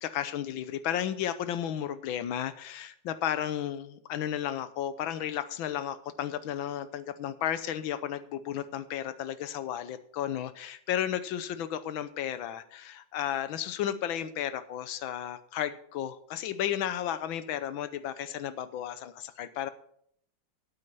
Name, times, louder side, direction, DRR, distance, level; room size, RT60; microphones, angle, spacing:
voice 1, 0.0-19.7, left 10 dB, 80° left, 13 dB, 1.5 m, -33 dB
8.8 x 8.7 x 6.8 m, 0.66 s
omnidirectional pair, 2.2 m